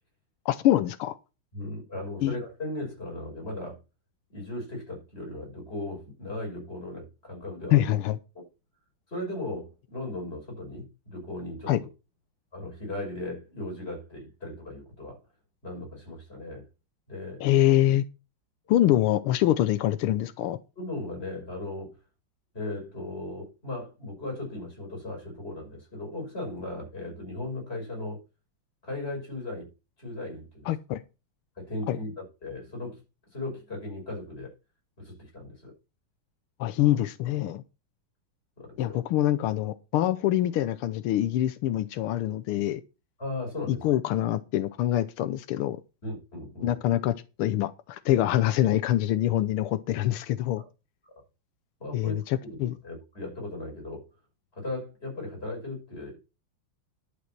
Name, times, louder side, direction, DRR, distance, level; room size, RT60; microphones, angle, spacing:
voice 1, 0.4-1.2 2.2-2.4 7.7-8.2 11.7-11.8 17.4-18.0 18.7-20.6 30.7-31.0 31.9-32.0 36.6-37.6 38.8-42.8 43.7-45.8 46.6-50.6 51.9-52.7, left 13 dB, 90° left, 1.6 m, -25 dB
voice 2, 1.5-3.8 4.3-7.9 8.3-8.4 9.1-11.8 12.5-15.2 15.6-16.6 17.1-17.4 20.8-22.0 22.5-28.2 28.8-29.7 30.0-30.7 31.6-33.0 33.3-34.5 35.0-35.7 38.6-39.0 43.2-43.8 46.0-46.8 50.6-50.7 51.8-52.1 52.4-52.6 52.8-54.0 54.5-56.2, left 2 dB, 25° left, 6.4 m, -37 dB
11.5 x 6.4 x 5.9 m
omnidirectional pair, 2.3 m